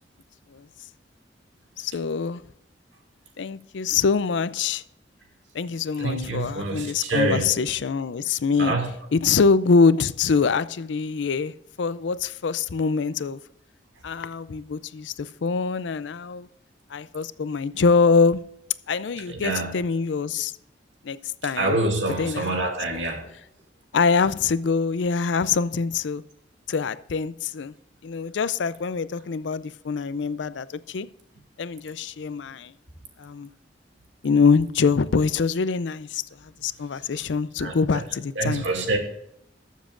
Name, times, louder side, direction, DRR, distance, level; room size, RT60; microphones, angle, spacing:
voice 1, 1.8-2.4 3.4-4.8 5.5-8.7 9.1-13.4 14.0-16.5 16.9-18.4 18.9-20.5 21.0-21.2 21.4-21.8 22.2-22.7 22.9-23.0 23.9-26.2 26.7-27.7 28.0-31.1 31.6-32.7 33.2-33.5 34.2-36.2 36.6-38.6, left 5 dB, 75° left, 0.5 m, -24 dB
voice 2, 6.0-7.6 8.6-8.9 19.3-19.8 21.4-23.3 37.6-37.7 38.4-39.0, right 2 dB, 90° right, 2.4 m, -26 dB
20.0 x 7.3 x 2.5 m
head